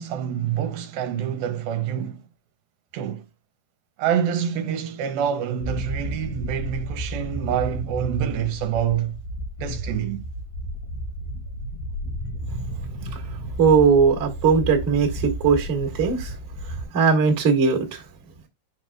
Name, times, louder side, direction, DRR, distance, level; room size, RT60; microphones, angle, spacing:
voice 1, 0.0-2.2 2.9-3.3 4.0-9.2 9.6-10.2, right 9 dB, 80° right, 2.4 m, -26 dB
sound 1, 5.6-16.8, equal, 80° left, 4.4 m, -32 dB
voice 2, 13.6-16.3 16.6-18.0, right 5 dB, 30° right, 1.3 m, -19 dB
9.7 x 6.0 x 2.3 m
omnidirectional pair, 4.5 m